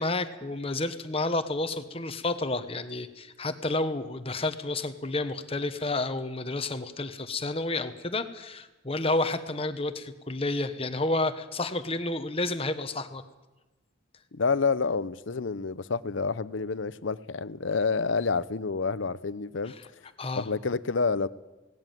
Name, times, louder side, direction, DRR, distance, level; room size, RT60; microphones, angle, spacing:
voice 1, 0.0-13.2 20.2-20.5, left 2 dB, 30° left, 1.3 m, -30 dB
voice 2, 14.3-19.7 20.4-21.3, left 4 dB, 80° left, 0.7 m, -28 dB
18.5 x 17.0 x 9.2 m
head